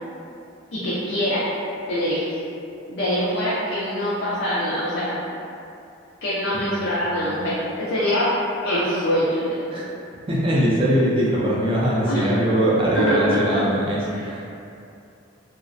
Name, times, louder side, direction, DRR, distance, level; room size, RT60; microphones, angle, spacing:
voice 1, 0.7-1.4 1.9-2.2 2.9-5.2 6.2-8.3 8.6-9.9 12.1-12.3 12.9-13.6 14.1-14.3, equal, 55° left, -9 dB, 0.4 m, -24 dB
voice 2, 10.3-14.5, right 1 dB, 25° right, -6 dB, 0.4 m, -21 dB
2.4 x 2.0 x 2.5 m, 2.6 s
head